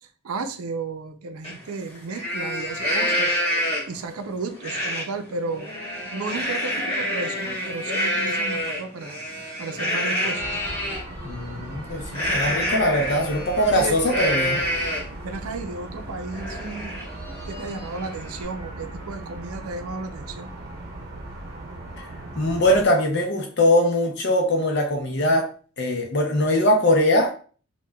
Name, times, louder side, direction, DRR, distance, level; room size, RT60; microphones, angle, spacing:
voice 1, 0.0-5.7 6.1-9.2 9.6-10.6 13.7-14.0 15.2-17.0 17.5-20.5, right 3 dB, 85° right, 0.5 m, -33 dB
Livestock farm animals working animals, 1.4-1.5 1.9-4.0 4.6-5.0 5.4-11.0 12.1-15.2 15.6-15.7 16.1-18.4, equal, 30° left, 1.5 m, -27 dB
sound 1, 10.4-22.8, right 1 dB, 45° right, 0.8 m, -38 dB
voice 2, 11.2-14.6 22.4-25.5 25.8-27.3, left 1 dB, 50° left, 0.6 m, -21 dB
4.6 x 2.2 x 2.3 m
head